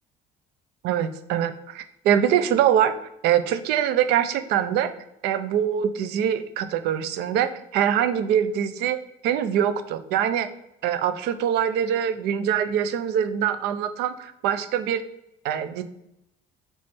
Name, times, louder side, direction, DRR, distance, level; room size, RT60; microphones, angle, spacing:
voice 1, 0.8-2.9 3.2-4.9 5.2-9.0 9.2-10.5 10.8-15.0 15.4-15.8, right 9 dB, 70° right, 11 dB, 0.5 m, -23 dB
3.4 x 3.1 x 4.2 m, 0.83 s
cardioid pair, 120°, 17 cm